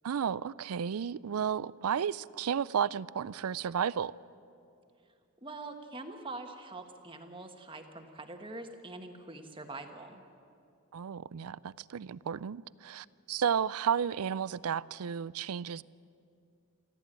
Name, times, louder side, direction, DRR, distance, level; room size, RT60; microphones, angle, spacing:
voice 1, 0.0-4.1 10.9-15.8, right 7 dB, 85° right, 0.4 m, -33 dB
voice 2, 5.4-10.2, right 2 dB, 25° right, 1.4 m, -44 dB
24.5 x 15.0 x 9.0 m
head